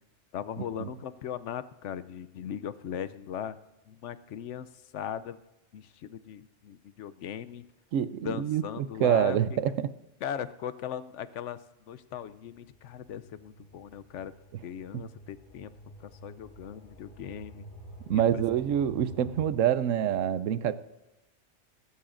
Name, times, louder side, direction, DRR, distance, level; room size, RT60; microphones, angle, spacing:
voice 1, 0.3-3.6 3.9-5.4 5.7-7.6 8.2-9.4 10.2-11.6 11.9-14.3 14.6-15.7 16.0-17.7 18.1-18.6, left 9 dB, 75° left, 14 dB, 0.9 m, -38 dB
voice 2, 7.9-9.8 14.9-15.0 18.1-20.7, right 10 dB, 85° right, 14 dB, 1.0 m, -26 dB
sound 1, 12.1-19.5, right 1 dB, 45° left, 5.6 m, -49 dB
25.0 x 13.0 x 2.5 m, 1.0 s
omnidirectional pair, 1.3 m